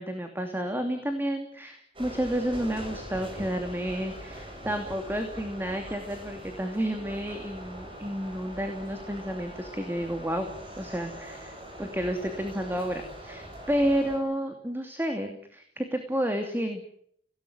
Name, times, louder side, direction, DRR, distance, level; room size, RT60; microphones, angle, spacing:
voice 1, 0.0-16.8, equal, 10° right, 5 dB, 2.7 m, -31 dB
sound 1, 1.9-14.2, right 1 dB, 30° right, 8.0 m, -42 dB
25.0 x 18.5 x 9.6 m, 0.68 s
head